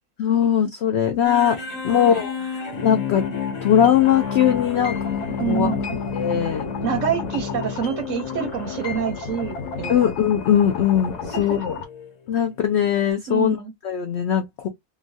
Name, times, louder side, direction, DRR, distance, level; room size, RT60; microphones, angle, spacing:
voice 1, 0.2-1.6 1.8-2.4 2.8-3.2 3.6-5.0 5.5-5.7 6.1-6.6 9.9-11.7 12.3-13.6 13.8-14.7, left 9 dB, 75° left, 0.6 m, -20 dB
sound 1, 1.2-12.1 12.8-12.9, left 6 dB, 35° left, 0.7 m, -31 dB
voice 2, 1.9-2.2 2.6-2.7 5.4-6.0 6.8-10.1 11.3-11.8 12.3-12.4 13.3-13.7, right 7 dB, 65° right, 0.9 m, -27 dB
sound 2, 3.8-11.8, left 4 dB, 90° left, 1.3 m, -34 dB
3.0 x 2.5 x 2.5 m
omnidirectional pair, 1.7 m